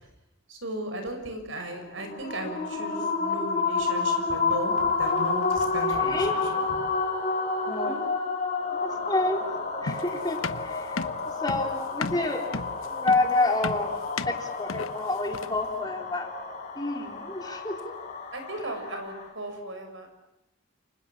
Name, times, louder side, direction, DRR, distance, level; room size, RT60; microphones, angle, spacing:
voice 1, 0.5-6.6 7.7-8.0 18.3-20.1, right 1 dB, 65° right, 6 dB, 6.5 m, -36 dB
sound 1, 2.0-19.3, left 4 dB, 35° left, 7.1 m, -30 dB
voice 2, 5.9-6.4 7.6-7.9 8.7-9.4 9.8-11.1 11.4-12.4 12.9-13.9 14.3-16.3 16.8-17.9, left 2 dB, 20° left, 2 dB, 3.9 m, -28 dB
sound 2, 9.9-15.7, left 4 dB, 80° left, 1.1 m, -34 dB
29.5 x 25.0 x 7.5 m, 0.94 s
head